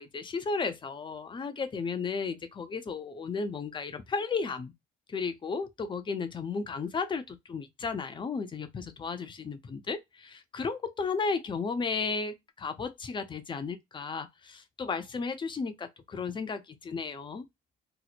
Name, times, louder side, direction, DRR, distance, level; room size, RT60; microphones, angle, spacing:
voice 1, 0.0-4.7 5.1-17.5, left 4 dB, 30° left, 0.5 m, -34 dB
2.9 x 2.0 x 4.0 m
cardioid pair, 110°, 17 cm